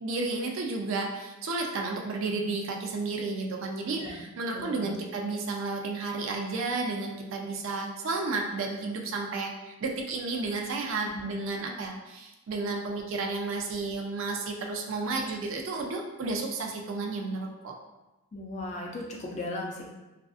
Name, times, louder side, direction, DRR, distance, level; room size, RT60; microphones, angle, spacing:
voice 1, 0.0-17.8, right 3 dB, 60° right, 1 dB, 0.3 m, -32 dB
voice 2, 4.5-4.9 11.1-11.3 18.3-19.9, left 2 dB, 30° left, -1 dB, 0.3 m, -37 dB
2.4 x 2.4 x 2.3 m, 1.0 s
head